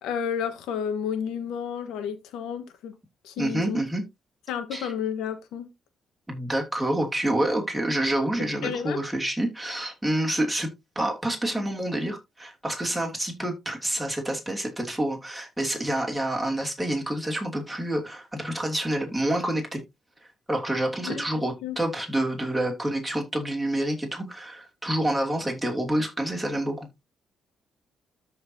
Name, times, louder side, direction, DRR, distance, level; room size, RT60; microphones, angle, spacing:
voice 1, 0.0-2.9 3.2-3.8 4.5-5.7 8.6-9.0 21.0-21.2 21.6-21.8, left 7 dB, 90° left, 1.6 m, -31 dB
voice 2, 3.4-4.0 4.7-4.9 6.3-10.7 10.9-19.8 20.5-26.9, right 1 dB, 5° right, 2.8 m, -28 dB
13.0 x 4.6 x 2.8 m
cardioid pair, 90°, 0 cm